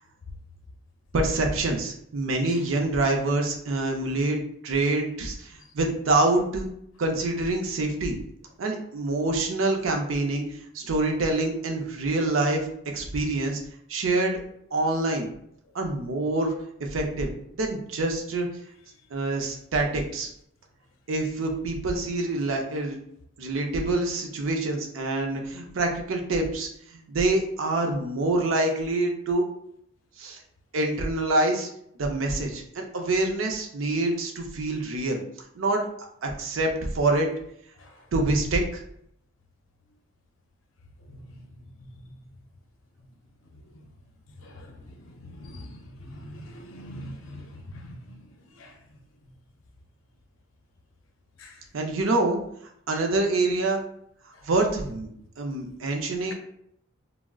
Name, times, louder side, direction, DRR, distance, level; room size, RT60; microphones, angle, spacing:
voice 1, 1.1-4.4 4.6-6.7 7.0-8.2 8.6-12.7 12.9-13.6 13.9-14.4 14.7-15.3 15.7-16.5 16.9-17.3 17.6-18.5 19.1-20.3 21.1-23.0 23.4-29.4 30.2-30.4 30.7-31.7 32.0-35.2 35.5-35.9 36.2-37.3 38.1-38.8 51.7-52.4 52.9-53.8 54.4-55.1 55.4-56.3, right 2 dB, 80° right, 2 dB, 0.5 m, -26 dB
voice 2, 44.4-45.7 46.0-47.5 47.7-48.2 48.6-48.7 51.4-51.5, equal, 75° left, 3 dB, 0.5 m, -42 dB
3.5 x 2.0 x 2.3 m, 0.70 s
head